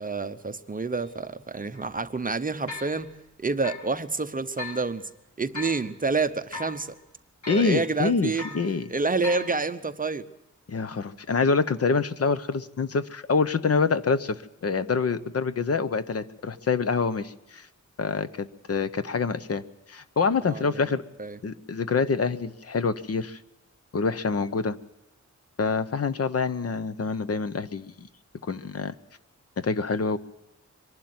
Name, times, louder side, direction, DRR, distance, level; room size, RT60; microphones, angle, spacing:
voice 1, 0.0-3.1 3.4-5.0 5.4-6.9 7.5-8.6 8.9-10.3 20.4-20.8 21.2-21.4, right 4 dB, 30° right, 0.8 m, -28 dB
sound 1, 1.0-1.1 1.7-1.9 2.7-3.0 3.6-3.9 4.6-4.8 5.5-5.8 6.5-6.8 7.4-7.8 8.4-8.6 9.2-9.5, left 3 dB, 70° left, 6.3 m, -37 dB
voice 2, 7.5-8.9 10.7-17.7 18.0-19.6 19.9-21.0 21.4-23.4 23.9-24.8 25.6-28.1 28.5-28.9 29.6-30.2, left 4 dB, 50° left, 0.9 m, -26 dB
24.0 x 11.5 x 9.5 m
wide cardioid pair, 155°, 30 cm